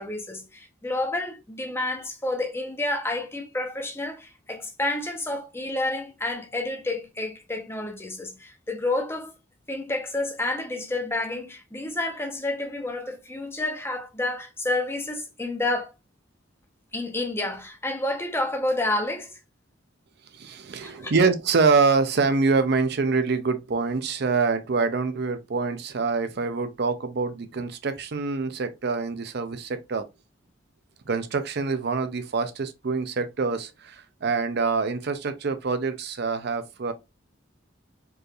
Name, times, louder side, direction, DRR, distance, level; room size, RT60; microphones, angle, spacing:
voice 1, 0.0-9.3 9.7-15.9 16.9-19.4 20.8-21.1, left 2 dB, 10° left, 0.7 m, -29 dB
voice 2, 20.3-30.1 31.1-36.9, right 4 dB, 55° right, 0.5 m, -25 dB
4.6 x 3.2 x 2.4 m
head